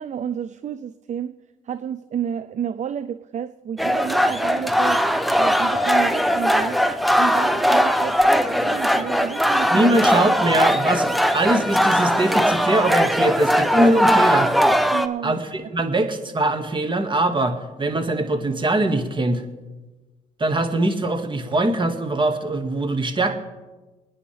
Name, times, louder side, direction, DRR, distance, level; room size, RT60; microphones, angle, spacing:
voice 1, 0.0-1.3 1.6-5.0 5.3-6.8 7.2-8.2 8.5-9.9 14.9-15.4, right 8 dB, 45° right, 13 dB, 0.6 m, -30 dB
sound 1, 3.8-15.1, equal, ahead, 1.0 m, -19 dB
voice 2, 9.7-14.5 15.2-19.4 20.4-23.4, right 1 dB, 30° right, 6 dB, 2.0 m, -22 dB
28.5 x 9.9 x 3.4 m, 1.2 s
supercardioid pair, 55°, 17 cm